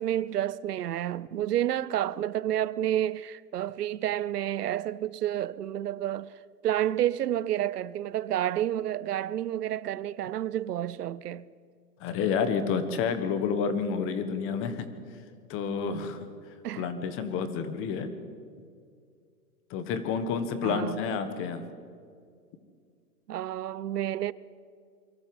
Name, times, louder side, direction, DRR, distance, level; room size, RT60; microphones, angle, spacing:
voice 1, 0.0-6.3 6.6-11.5 16.6-16.9 20.6-21.0 23.3-24.3, right 12 dB, 80° right, 0.8 m, -30 dB
voice 2, 12.0-14.9 15.5-16.3 16.7-18.2 19.7-21.6, left 6 dB, 25° left, 1.6 m, -29 dB
23.5 x 14.0 x 8.0 m
hypercardioid pair, 140°, 47 cm